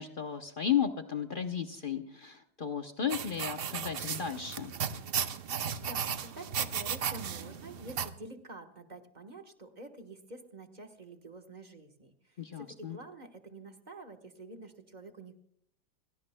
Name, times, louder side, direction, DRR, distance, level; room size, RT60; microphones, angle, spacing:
voice 1, 0.0-4.7 12.4-13.0, left 8 dB, 45° left, 7 dB, 0.7 m, -34 dB
sound 1, 3.1-8.1, right 7 dB, 65° right, 0.5 m, -35 dB
voice 2, 5.8-15.3, right 2 dB, 30° right, 5 dB, 1.2 m, -48 dB
29.5 x 17.0 x 2.2 m, 0.68 s
omnidirectional pair, 1.9 m